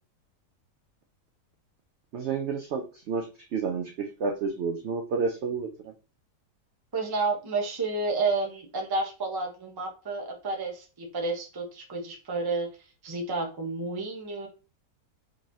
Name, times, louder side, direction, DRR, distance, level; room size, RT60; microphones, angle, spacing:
voice 1, 2.1-3.3 3.5-5.7, right 5 dB, 70° right, 4 dB, 0.6 m, -30 dB
voice 2, 6.9-12.7 13.0-14.5, right 3 dB, 35° right, 2 dB, 0.4 m, -30 dB
3.8 x 3.0 x 2.6 m, 0.33 s
omnidirectional pair, 1.7 m